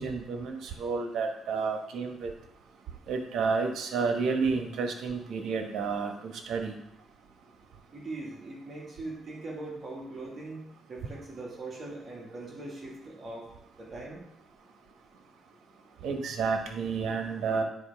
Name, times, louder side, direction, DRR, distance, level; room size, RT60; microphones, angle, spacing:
voice 1, 0.0-2.3 3.1-6.7 16.0-17.6, right 5 dB, 75° right, 4 dB, 1.1 m, -30 dB
voice 2, 7.9-13.5 13.8-14.2, right 2 dB, 40° right, -2 dB, 2.0 m, -41 dB
9.7 x 5.1 x 3.5 m, 0.77 s
cardioid pair, 100°, 0 cm